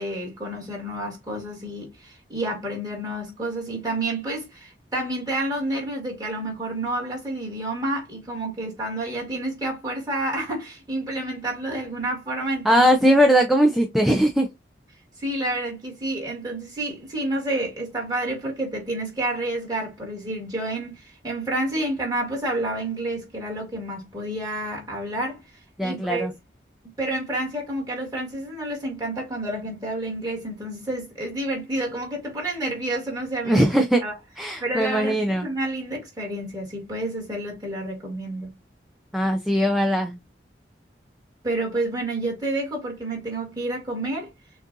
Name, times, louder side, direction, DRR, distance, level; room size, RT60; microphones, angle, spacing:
voice 1, 0.0-12.8 15.2-26.3 27.0-33.7 34.0-34.1 34.6-38.5 41.4-44.3, right 1 dB, 20° right, 2.0 m, -29 dB
voice 2, 12.6-14.5 25.8-26.3 33.5-34.0 34.4-35.5 39.1-40.2, equal, ahead, 0.4 m, -20 dB
6.3 x 2.4 x 2.6 m
head